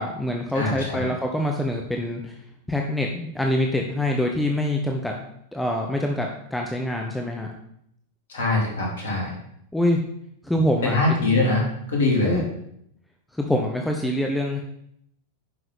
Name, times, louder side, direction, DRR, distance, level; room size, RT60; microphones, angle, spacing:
voice 1, 0.0-2.4 2.7-5.1 5.5-7.5 9.7-10.0 10.4-11.4 12.2-12.4 13.3-14.6, left 1 dB, 5° left, 1 dB, 1.0 m, -25 dB
voice 2, 0.5-1.1 8.3-9.3 10.8-12.4, left 2 dB, 60° left, -1 dB, 3.2 m, -23 dB
9.4 x 6.1 x 5.3 m, 0.73 s
figure-of-eight pair, 90°, 0 cm